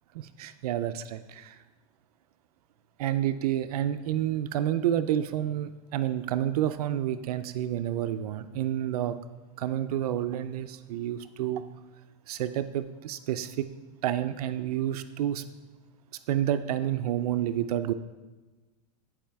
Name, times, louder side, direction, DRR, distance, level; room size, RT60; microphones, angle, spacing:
voice 1, 0.1-1.6 3.0-9.2 9.6-11.6 12.3-13.7 14.0-15.4 16.3-17.9, right 11 dB, 75° right, 11 dB, 0.5 m, -29 dB
10.0 x 4.9 x 3.4 m, 1.2 s
supercardioid pair, 145°, 19 cm